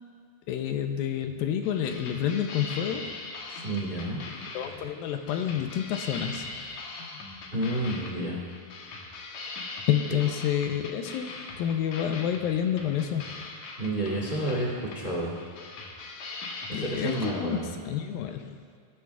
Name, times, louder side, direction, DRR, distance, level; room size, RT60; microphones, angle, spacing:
voice 1, 0.5-3.1 3.5-3.7 4.5-6.5 9.9-13.4 16.7-17.6 17.8-18.6, left 9 dB, 85° left, 6 dB, 2.4 m, -29 dB
sound 1, 1.2-17.3, left 3 dB, 65° left, 2.3 m, -41 dB
voice 2, 3.6-4.2 7.5-8.4 13.8-15.3 16.7-17.7, right 1 dB, 40° right, -4 dB, 0.7 m, -30 dB
20.5 x 11.0 x 2.4 m, 2.1 s
omnidirectional pair, 4.2 m